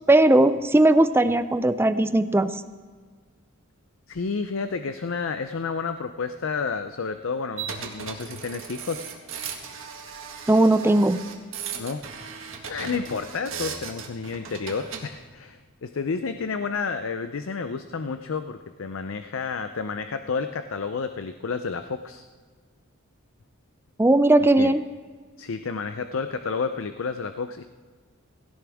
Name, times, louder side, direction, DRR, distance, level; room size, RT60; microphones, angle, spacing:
voice 1, 0.1-2.5 10.5-11.2 24.0-24.8, right 2 dB, 10° right, 12 dB, 0.4 m, -18 dB
voice 2, 4.1-9.1 11.8-12.0 12.7-22.2 24.6-24.7 25.4-27.6, left 5 dB, 65° left, 9 dB, 0.5 m, -30 dB
sound 1, 7.6-15.1, right 6 dB, 65° right, 1.7 m, -37 dB
17.0 x 16.5 x 3.5 m, 1.5 s
head